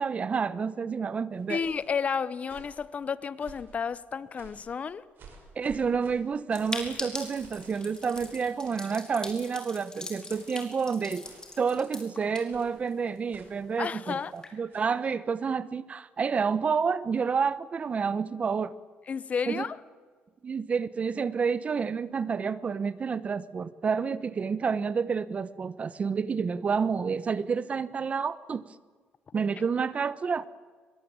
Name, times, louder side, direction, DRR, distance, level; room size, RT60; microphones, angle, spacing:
voice 1, 0.0-1.6 5.6-11.3 11.6-18.7 19.5-19.6 20.4-28.6 29.3-30.5, right 5 dB, 35° right, 1.0 m, -29 dB
sound 1, 1.3-1.9 2.4-2.8 3.4-3.8 4.3-4.7 5.2-8.9 9.2-9.5 10.3-10.7 11.2-11.6 12.5-12.8 13.3-13.6 14.1-14.3 14.7-15.0, right 4 dB, 65° right, 6.1 m, -53 dB
voice 2, 1.5-5.0 13.8-14.3 19.1-19.8, left 6 dB, 40° left, 0.9 m, -31 dB
sound 2, 6.5-13.2 13.5-13.6 13.8-13.9 14.2-14.5, left 3 dB, 20° left, 4.9 m, -41 dB
24.0 x 22.0 x 8.9 m
cardioid pair, 110°, 4 cm